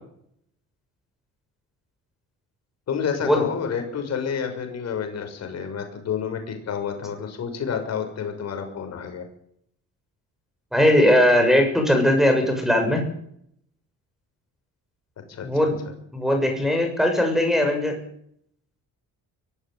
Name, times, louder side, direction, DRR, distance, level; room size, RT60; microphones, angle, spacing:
voice 1, 2.9-9.2 15.3-15.5 15.8-15.9, left 7 dB, 55° left, 5 dB, 6.5 m, -29 dB
voice 2, 10.7-13.0 15.4-15.8 16.1-18.0, left 1 dB, ahead, 5 dB, 6.7 m, -19 dB
23.5 x 14.5 x 9.2 m, 0.68 s
cardioid pair, 145°, 32 cm